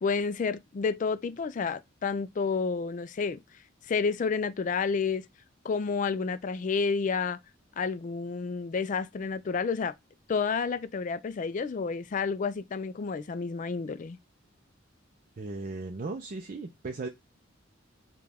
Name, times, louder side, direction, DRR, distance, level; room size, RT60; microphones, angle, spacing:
voice 1, 0.0-3.4 3.9-5.3 5.6-7.4 7.8-9.9 10.3-14.2, left 5 dB, 40° left, 0.3 m, -30 dB
voice 2, 15.4-17.1, right 3 dB, 40° right, 0.4 m, -36 dB
5.0 x 2.3 x 3.4 m
head